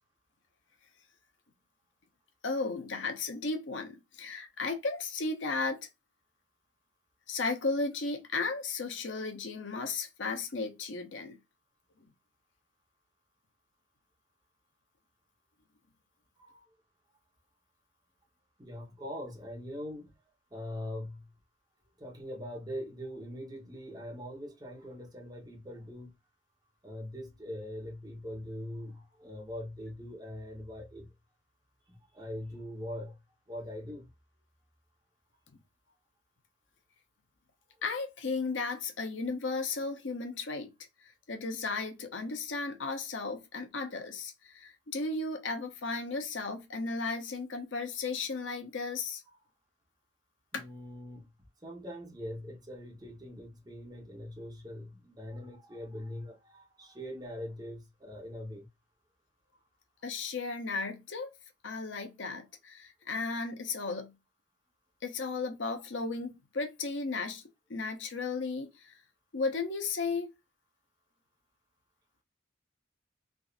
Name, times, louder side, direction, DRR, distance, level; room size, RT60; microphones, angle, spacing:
voice 1, 2.4-5.8 7.3-11.4 12.0-12.1 37.8-40.7 41.3-49.2 50.5-50.6 60.0-61.3 61.6-64.1 65.0-67.4 67.7-68.9 69.3-70.3, left 4 dB, 90° left, 0.8 m, -35 dB
voice 2, 18.6-20.2 20.5-21.3 22.0-26.1 26.8-31.1 31.9-33.2 33.5-34.1 50.5-51.3 51.6-58.7, left 1 dB, 20° right, 1.1 m, -42 dB
3.5 x 2.7 x 2.5 m
head